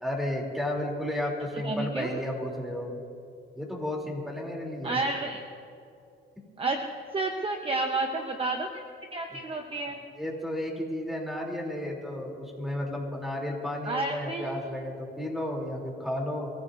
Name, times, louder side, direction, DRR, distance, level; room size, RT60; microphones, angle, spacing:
voice 1, 0.0-3.0 3.6-5.0 6.4-6.5 9.3-9.4 10.2-16.5, left 1 dB, ahead, -1 dB, 3.5 m, -33 dB
voice 2, 1.6-2.1 4.8-5.4 6.6-6.8 7.1-8.8 9.1-10.0 13.8-14.6, right 3 dB, 30° right, 3 dB, 1.1 m, -30 dB
26.5 x 15.0 x 2.8 m, 2.5 s
cardioid pair, 90°, 20 cm